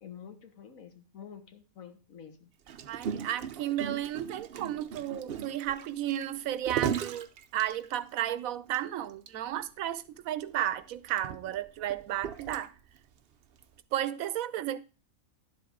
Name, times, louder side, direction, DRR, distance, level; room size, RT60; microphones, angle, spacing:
voice 1, 0.0-2.5 3.1-3.3, left 8 dB, 80° left, 1.7 m, -49 dB
Gurgling, 2.7-8.2 8.7-8.8 9.1-9.3 9.6-9.7 10.5-13.0 13.6-13.8, right 8 dB, 55° right, 0.7 m, -37 dB
voice 2, 2.9-12.7 13.9-14.8, right 12 dB, 80° right, 1.0 m, -33 dB
11.0 x 7.8 x 3.6 m
omnidirectional pair, 1.4 m